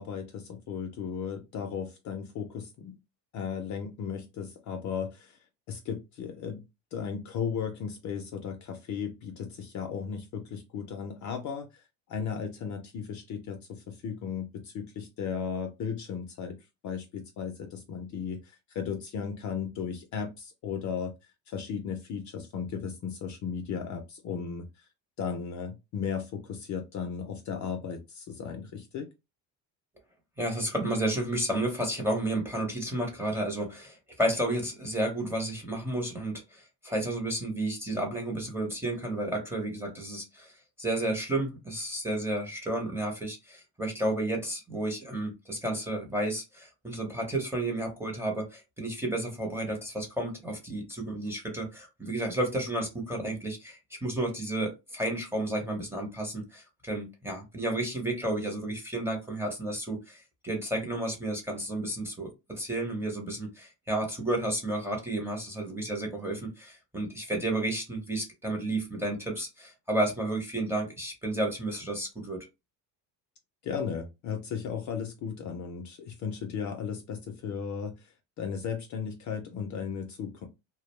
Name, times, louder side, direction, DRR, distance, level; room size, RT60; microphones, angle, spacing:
voice 1, 0.0-3.0 3.3-5.4 5.7-6.6 6.9-11.8 12.1-16.6 16.8-21.1 21.5-24.7 25.2-29.1 73.6-77.9 78.4-80.5, left 6 dB, 45° left, 0.4 m, -35 dB
voice 2, 30.4-72.5, right 1 dB, 5° right, 0.6 m, -32 dB
2.3 x 2.0 x 3.0 m
cardioid pair, 140°, 44 cm